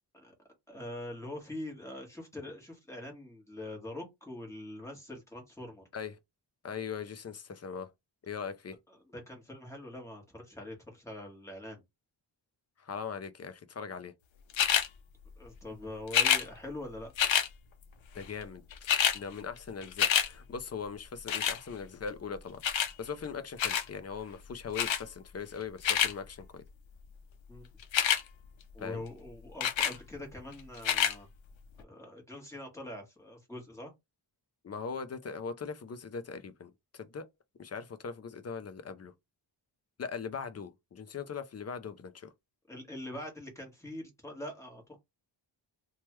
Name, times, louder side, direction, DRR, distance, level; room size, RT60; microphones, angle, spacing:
voice 1, 0.7-5.9 8.9-11.8 15.4-17.1 27.5-27.7 28.7-31.3 31.8-33.9 42.7-45.0, left 1 dB, 5° left, 1.2 m, -43 dB
voice 2, 6.6-7.9 8.2-8.8 12.8-14.1 18.1-22.6 23.0-26.6 28.8-29.0 34.6-37.2 37.6-39.1 40.0-42.3, left 6 dB, 35° left, 0.4 m, -40 dB
sound 1, 14.5-14.9 16.1-16.4 17.2-17.5 18.4-18.5 18.7-19.2 19.6-20.3 21.3-21.6 22.6-22.9 23.6-23.9 24.8-25.0 25.6-26.1 27.8-28.2 29.6-30.0 30.8-31.1 31.8-31.9, left 8 dB, 75° left, 0.6 m, -27 dB
3.0 x 2.3 x 3.0 m
wide cardioid pair, 135°, 47 cm